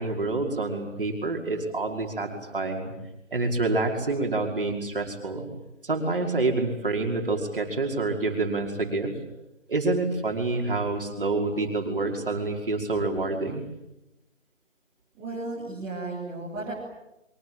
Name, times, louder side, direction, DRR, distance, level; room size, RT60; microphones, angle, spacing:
voice 1, 0.0-2.9 3.3-5.5 5.8-9.1 9.7-13.6, right 3 dB, 45° right, 2 dB, 5.5 m, -27 dB
voice 2, 15.1-16.7, right 2 dB, 5° right, -10 dB, 2.6 m, -34 dB
27.0 x 24.5 x 9.0 m, 0.91 s
figure-of-eight pair, 175°, 38 cm